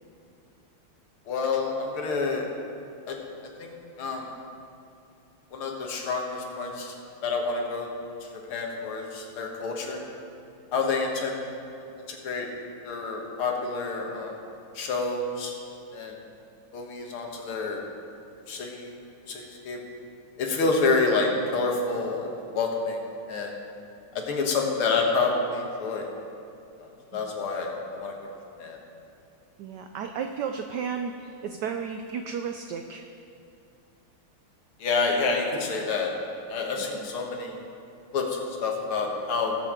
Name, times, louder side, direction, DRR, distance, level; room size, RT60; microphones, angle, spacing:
voice 1, 1.3-2.5 3.1-3.2 3.6-4.3 5.5-6.9 7.2-7.9 8.5-10.1 10.7-11.3 12.1-12.5 12.8-14.4 14.7-15.6 15.9-16.2 16.7-17.8 18.5-18.9 19.3-19.8 20.4-23.0 23.3-23.5 24.1-26.1 26.8-28.1 28.6-28.8 34.8-36.1 36.5-37.6 38.1-39.6, left 4 dB, 80° left, 1 dB, 2.2 m, -28 dB
voice 2, 29.6-33.0, right 6 dB, 80° right, 6 dB, 0.9 m, -33 dB
19.5 x 7.3 x 3.7 m, 2.6 s
omnidirectional pair, 2.4 m